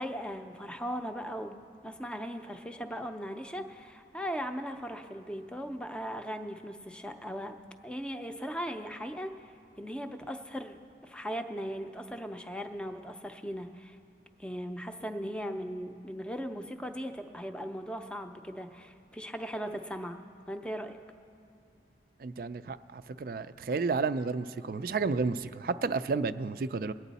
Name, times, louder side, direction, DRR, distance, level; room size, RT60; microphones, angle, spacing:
voice 1, 0.0-7.5 7.8-9.3 9.8-14.0 14.4-20.2 20.5-21.0, equal, 5° left, 6 dB, 0.5 m, -38 dB
voice 2, 22.2-26.9, right 4 dB, 50° right, 13 dB, 0.3 m, -31 dB
22.0 x 9.0 x 4.1 m, 2.9 s
head